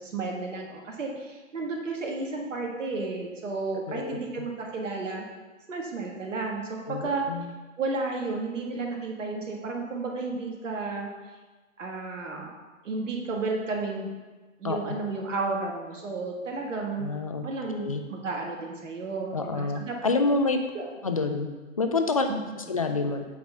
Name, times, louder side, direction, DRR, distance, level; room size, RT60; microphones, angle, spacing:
voice 1, 0.0-5.2 5.7-7.2 7.8-11.1 11.8-12.5 12.8-14.2 14.6-17.1 17.4-20.0 20.7-20.8 22.3-22.4 22.7-22.8, right 3 dB, 60° right, 0 dB, 1.8 m, -32 dB
voice 2, 3.9-4.5 6.9-7.5 14.6-15.0 17.0-18.0 19.3-20.6 21.0-22.3 22.6-23.3, left 3 dB, 30° left, 6 dB, 0.4 m, -28 dB
8.4 x 4.0 x 5.5 m, 1.3 s
figure-of-eight pair, 135°, 41 cm